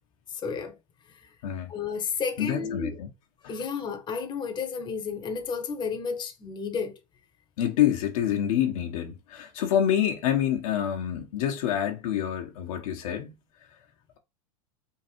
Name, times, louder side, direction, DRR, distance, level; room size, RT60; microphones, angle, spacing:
voice 1, 0.3-0.8 1.7-2.9 3.5-7.0, left 5 dB, 25° left, 1.1 m, -32 dB
voice 2, 2.4-3.1 3.4-3.5 7.6-13.3, left 10 dB, 70° left, 1.3 m, -27 dB
3.8 x 2.5 x 4.5 m
hypercardioid pair, 115°, 18 cm